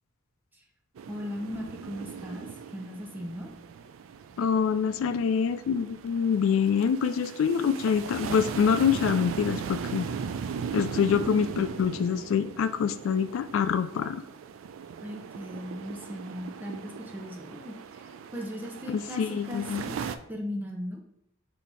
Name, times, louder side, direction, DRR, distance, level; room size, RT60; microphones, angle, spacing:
sound 1, 0.9-20.2, right 6 dB, 80° right, 0.3 m, -38 dB
voice 1, 1.1-3.5 15.0-17.8 18.3-20.0 20.3-21.0, equal, 10° right, 2 dB, 0.6 m, -38 dB
voice 2, 4.4-10.1 10.7-14.2 18.9-19.8, left 7 dB, 85° left, 13 dB, 0.3 m, -26 dB
4.2 x 2.8 x 4.5 m, 0.74 s
head